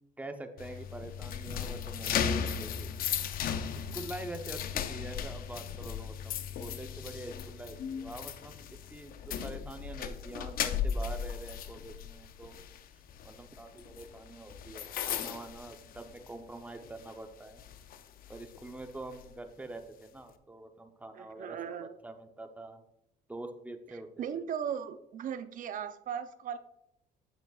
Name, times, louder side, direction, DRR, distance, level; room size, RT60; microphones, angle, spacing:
voice 1, 0.2-2.9 3.7-6.3 6.6-8.6 8.9-12.6 13.2-17.6 18.3-22.8 23.3-24.3, right 2 dB, 10° right, 6 dB, 0.8 m, -45 dB
sound 1, 0.6-16.5 16.8-17.1 17.6-19.3, left 8 dB, 60° left, 0.6 m, -36 dB
voice 2, 21.1-22.0 23.9-26.6, right 8 dB, 50° right, 12 dB, 0.5 m, -38 dB
8.2 x 7.4 x 2.4 m, 0.82 s
cardioid pair, 110°, 17 cm